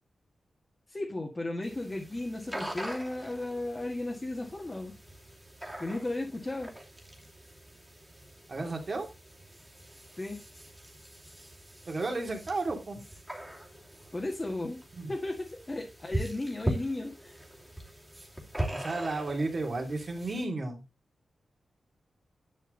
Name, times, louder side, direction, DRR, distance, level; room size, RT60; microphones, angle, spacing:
voice 1, 0.9-4.9 5.8-6.7 10.2-10.4 14.1-14.8 15.1-17.3, left 2 dB, 20° left, -1 dB, 1.8 m, -35 dB
sound 1, 1.6-20.4, right 1 dB, 5° right, 2.5 m, -41 dB
voice 2, 8.5-9.1 11.9-13.0 15.0-15.1 18.7-20.8, right 2 dB, 40° right, 3 dB, 2.9 m, -33 dB
10.5 x 6.3 x 3.9 m, 0.27 s
wide cardioid pair, 120°, 0 cm